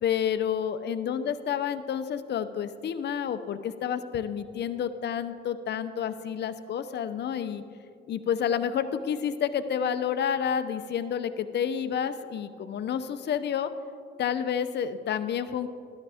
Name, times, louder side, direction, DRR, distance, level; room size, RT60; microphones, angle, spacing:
voice 1, 0.0-7.6 8.1-13.7 14.2-15.7, left 8 dB, 60° left, 11 dB, 0.7 m, -29 dB
14.0 x 11.0 x 3.5 m, 2.4 s
cardioid pair, 90°, 20 cm